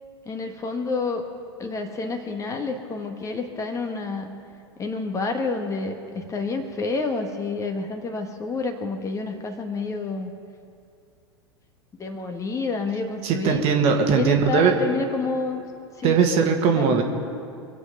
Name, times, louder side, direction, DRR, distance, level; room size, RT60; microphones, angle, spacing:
voice 1, 0.2-1.2 1.6-4.3 4.8-10.3 12.0-13.6 14.1-15.6 16.0-16.2 16.7-17.0, left 3 dB, 20° left, 5 dB, 1.5 m, -29 dB
voice 2, 13.2-14.7 16.0-17.0, right 6 dB, 45° right, 4 dB, 1.7 m, -20 dB
24.0 x 8.3 x 5.5 m, 2.4 s
figure-of-eight pair, 85°, 14 cm